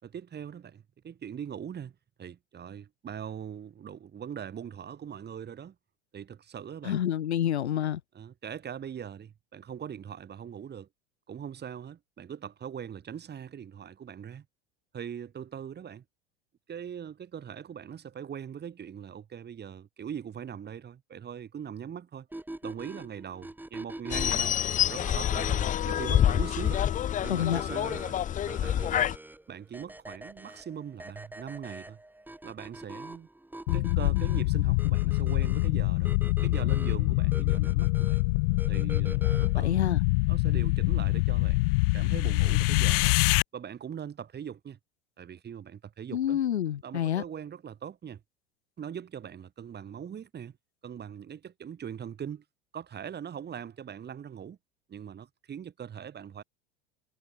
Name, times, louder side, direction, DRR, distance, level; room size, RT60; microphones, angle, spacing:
voice 1, 0.0-5.7 6.1-7.0 8.1-10.9 11.3-14.4 14.9-16.0 16.7-22.3 22.6-24.6 24.9-26.8 27.2-28.2 28.6-29.1 29.5-32.0 32.4-33.3 33.7-36.1 36.4-38.2 38.7-39.8 40.3-43.2 43.5-44.8 45.2-46.4 46.8-48.2 48.8-50.6 50.8-52.4 52.7-54.6 54.9-56.4, right 8 dB, 30° right, 4.9 m, -41 dB
voice 2, 6.8-8.0 27.3-27.6 39.3-40.0 46.1-47.2, left 10 dB, 85° left, 0.9 m, -28 dB
sound 1, 22.3-39.7, right 1 dB, 5° right, 3.9 m, -44 dB
sound 2, 24.1-29.2, left 10 dB, 25° left, 0.6 m, -27 dB
sound 3, 33.7-43.4, left 26 dB, 60° left, 0.8 m, -25 dB
hypercardioid pair, 80°, 33 cm